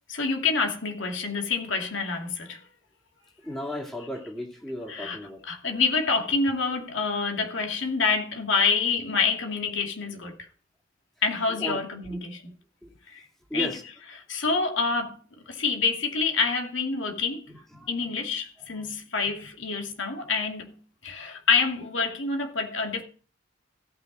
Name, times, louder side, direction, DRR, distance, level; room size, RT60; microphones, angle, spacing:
voice 1, 0.1-2.6 4.9-10.3 11.2-12.5 13.1-13.2 13.5-13.8 14.1-15.2 15.5-17.5 17.9-20.7 21.0-23.0, left 4 dB, 75° left, 2.4 m, -27 dB
voice 2, 3.4-5.4 11.6-11.8 12.8-12.9 13.5-13.8 17.7-17.9, equal, ahead, 2.4 m, -34 dB
16.5 x 6.1 x 3.9 m
head